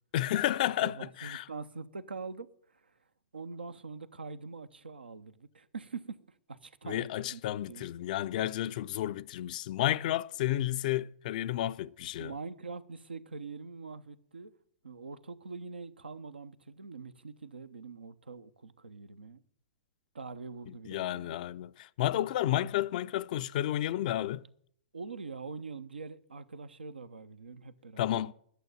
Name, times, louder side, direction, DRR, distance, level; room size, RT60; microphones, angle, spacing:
voice 1, 0.1-1.4 6.9-12.3 20.9-24.4 28.0-28.3, left 13 dB, 50° left, 0.4 m, -31 dB
voice 2, 0.8-3.0 3.3-7.4 7.7-7.9 8.7-8.9 12.2-14.5 14.8-19.4 20.1-21.4 24.9-28.3, right 4 dB, 80° right, 0.7 m, -44 dB
11.5 x 6.8 x 9.0 m
figure-of-eight pair, 105°, 5 cm